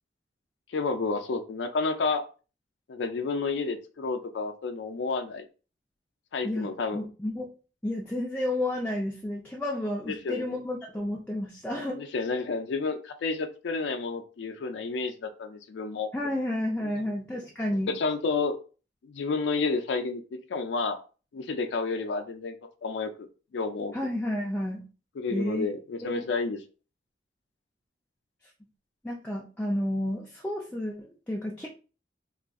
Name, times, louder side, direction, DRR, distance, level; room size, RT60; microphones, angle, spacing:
voice 1, 0.7-2.2 2.9-5.4 6.3-7.0 10.1-10.6 11.9-16.1 17.9-18.6 19.1-20.2 20.5-21.0 21.3-22.5 22.8-23.3 23.5-23.9 25.2-26.6, left 4 dB, 75° left, 6 dB, 0.4 m, -30 dB
voice 2, 6.4-7.5 7.8-12.0 16.1-17.9 23.9-24.9 25.3-25.7 26.0-26.3 29.0-31.7, left 1 dB, 10° left, -3 dB, 0.3 m, -31 dB
2.4 x 2.3 x 3.5 m, 0.35 s
head